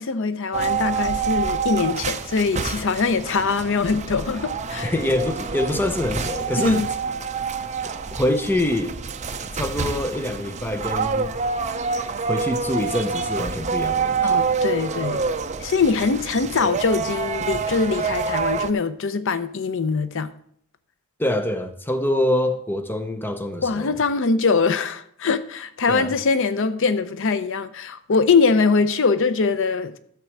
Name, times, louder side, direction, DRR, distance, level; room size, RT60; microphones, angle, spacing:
voice 1, 0.0-4.9 6.6-6.9 14.2-15.2 15.6-20.3 23.6-30.0, left 4 dB, 65° left, 0.6 m, -22 dB
sound 1, 0.5-18.7, right 5 dB, 35° right, 0.6 m, -27 dB
voice 2, 4.8-6.9 7.8-9.0 9.5-11.3 12.2-14.6 21.2-24.0 25.9-26.1, left 1 dB, 10° left, 0.7 m, -25 dB
12.5 x 4.6 x 7.2 m
head